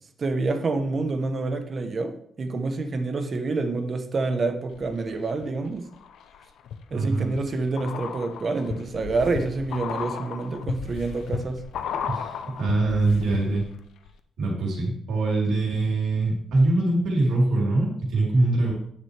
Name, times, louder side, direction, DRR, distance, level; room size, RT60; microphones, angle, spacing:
voice 1, 0.2-5.9 6.9-11.6, right 3 dB, 35° right, 7 dB, 0.9 m, -27 dB
sound 1, 4.7-5.5 5.9-13.8 14.1-14.2, left 7 dB, 80° left, 0.7 m, -35 dB
voice 2, 6.9-7.3 12.1-13.6 14.4-18.7, right 2 dB, 85° right, -3 dB, 3.7 m, -23 dB
9.9 x 7.3 x 3.3 m, 0.70 s
cardioid pair, 165°, 0 cm